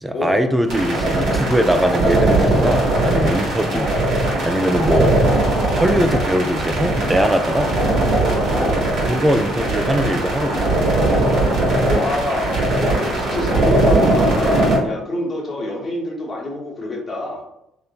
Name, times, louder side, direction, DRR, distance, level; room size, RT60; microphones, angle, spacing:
voice 1, 0.0-3.9 4.4-5.1 5.7-7.7 9.1-10.8, equal, 10° right, 8 dB, 0.3 m, -20 dB
sound 1, 0.7-14.8, right 1 dB, 60° right, 1.2 m, -19 dB
voice 2, 11.9-17.4, left 1 dB, 40° left, -2 dB, 0.8 m, -26 dB
3.2 x 2.0 x 2.3 m, 0.81 s
supercardioid pair, 70°, 0 cm